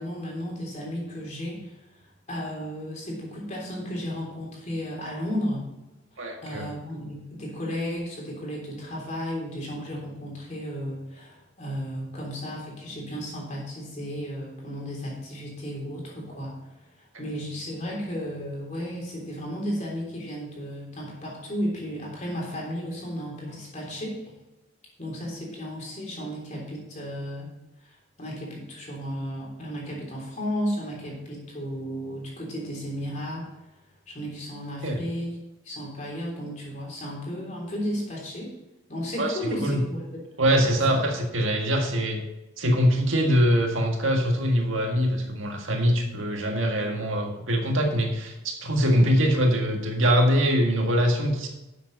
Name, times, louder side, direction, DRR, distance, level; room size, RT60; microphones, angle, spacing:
voice 1, 0.0-1.8 2.3-5.7 6.1-16.6 17.0-24.3 25.0-27.5 28.2-33.5 34.1-35.4 35.6-38.5 38.9-40.2 40.5-40.7 48.8-49.1, equal, 35° left, -3 dB, 3.5 m, -34 dB
voice 2, 6.2-6.7 34.8-35.0 39.2-39.8 40.4-42.2 42.6-51.5, equal, 80° right, 2 dB, 1.8 m, -23 dB
11.5 x 7.4 x 4.1 m, 0.99 s
head